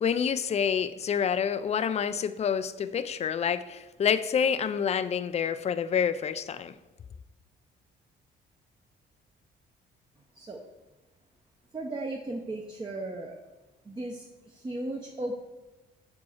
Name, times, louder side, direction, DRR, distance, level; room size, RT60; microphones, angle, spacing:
voice 1, 0.0-6.7, left 7 dB, 35° left, 0.4 m, -28 dB
voice 2, 11.7-13.3 13.9-15.3, right 2 dB, 25° right, 0.7 m, -36 dB
5.3 x 4.6 x 5.6 m
cardioid pair, 90°, 20 cm